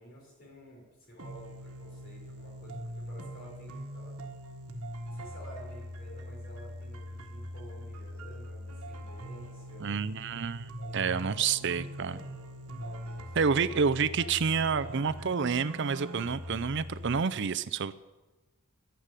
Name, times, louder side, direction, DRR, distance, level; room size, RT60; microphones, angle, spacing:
voice 1, 0.0-4.1 5.0-9.8 10.8-11.0 11.3-12.5 12.8-13.5, equal, 40° left, -3 dB, 5.6 m, -51 dB
sound 1, 1.2-17.2, equal, 80° right, 1.4 m, -42 dB
voice 2, 9.8-12.2 13.4-17.9, right 5 dB, 55° right, 13 dB, 0.5 m, -29 dB
11.5 x 10.0 x 9.1 m, 1.1 s
head